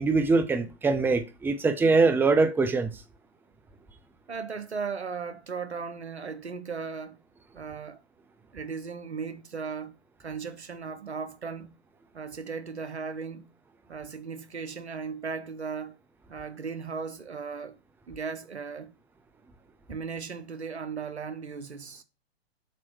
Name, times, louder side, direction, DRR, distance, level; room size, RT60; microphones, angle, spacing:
voice 1, 0.0-3.0, right 3 dB, 5° right, 0.7 m, -23 dB
voice 2, 4.3-7.2 7.5-8.0 8.5-9.9 10.2-11.7 12.1-13.5 13.9-16.0 16.3-17.7 18.1-18.9 19.9-22.0, right 5 dB, 85° right, 1.1 m, -36 dB
7.9 x 3.0 x 6.2 m
figure-of-eight pair, 110°, 32 cm